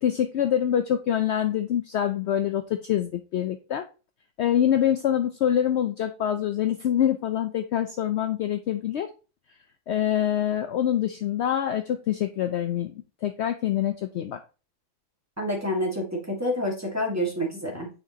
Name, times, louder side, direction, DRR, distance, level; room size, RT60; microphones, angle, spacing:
voice 1, 0.0-3.9 4.4-9.1 9.9-14.4, left 10 dB, 75° left, 7 dB, 0.6 m, -25 dB
voice 2, 15.4-17.9, equal, 10° right, -1 dB, 1.4 m, -28 dB
9.0 x 4.4 x 2.7 m, 0.33 s
omnidirectional pair, 1.7 m